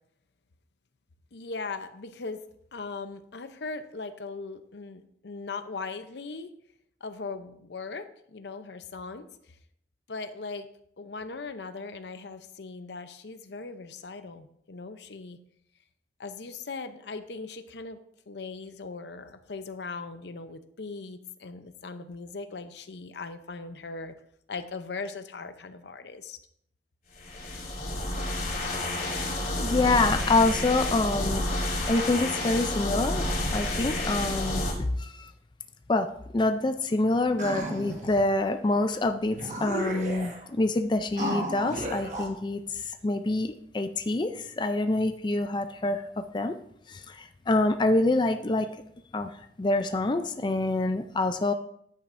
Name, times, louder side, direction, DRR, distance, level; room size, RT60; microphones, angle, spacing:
voice 1, 1.3-2.4 2.7-6.5 7.0-9.3 10.1-10.7 11.0-15.4 16.2-18.0 18.3-24.1 24.5-26.4, left 4 dB, 75° left, 10 dB, 0.7 m, -39 dB
sound 1, 27.1-34.7, left 1 dB, 50° left, 3.4 m, -30 dB
voice 2, 29.6-31.5 31.9-35.3 35.9-36.1 36.3-46.0 46.3-46.6 46.9-48.7 49.1-49.3 49.6-51.5, left 2 dB, 25° left, 8 dB, 0.4 m, -26 dB
sound 2, 37.4-38.2 38.9-39.0 39.3-40.5 41.2-42.3, right 1 dB, 45° right, 1.4 m, -33 dB
10.0 x 8.8 x 2.6 m, 0.70 s
head